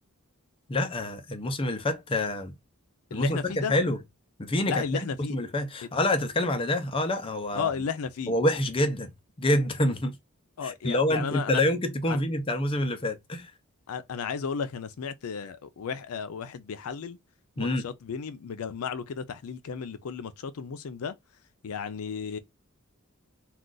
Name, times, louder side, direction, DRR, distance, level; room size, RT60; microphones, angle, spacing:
voice 1, 0.7-2.5 3.1-4.0 4.4-5.0 5.3-7.7 8.3-9.1 9.4-10.1 10.6-13.5 17.6-17.8, left 1 dB, 25° left, 0.5 m, -27 dB
voice 2, 3.1-3.7 4.7-5.4 7.6-8.4 10.6-11.6 12.1-12.2 13.9-17.2 17.6-21.1 21.6-22.4, left 6 dB, 80° left, 0.4 m, -34 dB
2.4 x 2.4 x 3.8 m
head